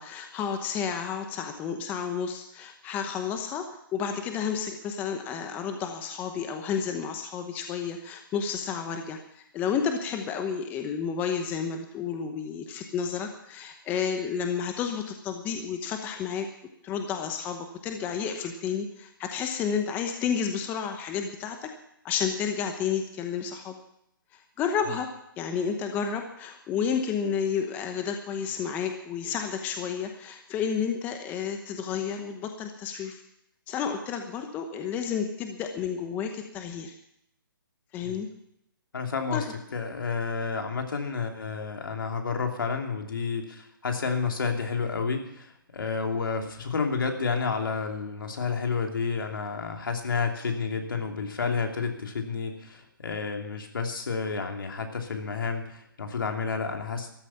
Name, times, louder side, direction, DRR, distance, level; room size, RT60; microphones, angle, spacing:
voice 1, 0.0-3.6 3.9-16.5 16.8-21.7 22.0-23.7 24.3-25.1 25.4-33.2 33.7-36.9 37.9-38.3 39.3-39.5, left 7 dB, 15° left, 6 dB, 1.0 m, -31 dB
voice 2, 38.9-39.4 39.7-57.1, left 5 dB, 70° left, 3 dB, 2.9 m, -30 dB
14.0 x 13.0 x 5.8 m, 0.77 s
hypercardioid pair, 150°, 12 cm